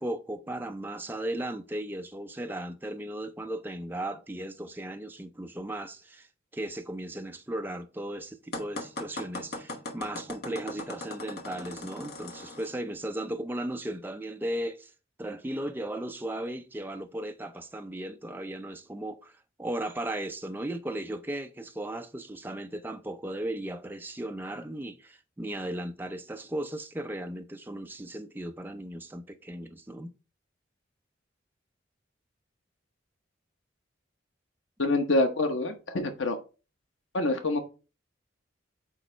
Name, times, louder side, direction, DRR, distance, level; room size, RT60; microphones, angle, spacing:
voice 1, 0.0-6.3 6.5-14.9 15.2-30.1, right 1 dB, 10° right, 0.5 m, -36 dB
sound 1, 8.5-12.7, left 2 dB, 55° left, 1.2 m, -39 dB
voice 2, 34.8-36.4 37.1-37.6, left 2 dB, 85° left, 1.0 m, -26 dB
8.2 x 3.1 x 4.3 m
head